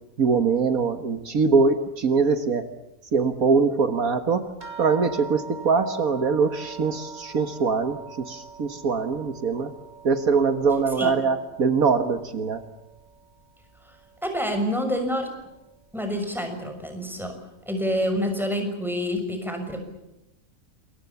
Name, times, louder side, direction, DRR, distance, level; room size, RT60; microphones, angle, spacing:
voice 1, 0.2-2.7 3.1-4.5 4.8-9.7 10.0-12.6, right 5 dB, 70° right, 9 dB, 2.0 m, -23 dB
sound 1, 4.6-13.4 13.7-14.6 15.4-15.5 15.9-16.0, right 5 dB, 30° right, 3.0 m, -43 dB
voice 2, 14.2-15.3 15.9-17.3 17.7-19.8, equal, ahead, 5 dB, 6.3 m, -27 dB
28.0 x 23.0 x 7.1 m, 0.93 s
omnidirectional pair, 1.5 m